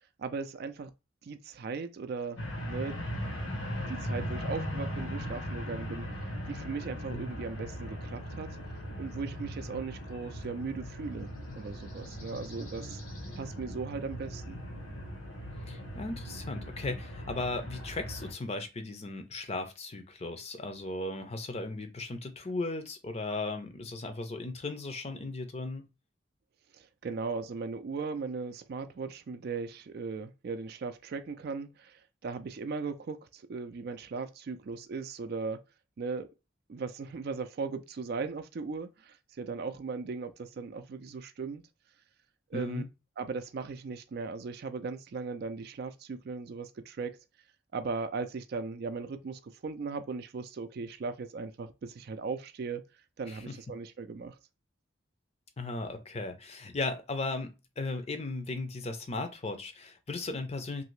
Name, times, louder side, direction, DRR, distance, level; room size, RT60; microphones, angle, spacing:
voice 1, 0.2-0.9 1.2-2.4 2.7-3.0 3.8-8.5 9.0-13.0 13.4-14.6 26.7-35.6 36.0-36.3 36.7-41.6 42.5-42.8 43.2-47.2 47.7-52.8 53.2-54.4, right 4 dB, 55° right, 0.4 m, -38 dB
sound 1, 2.4-18.3, equal, 85° left, 1.0 m, -39 dB
voice 2, 15.7-25.9 42.5-42.9 53.3-53.6 55.6-60.8, left 2 dB, 30° left, 0.5 m, -36 dB
2.8 x 2.6 x 3.1 m
head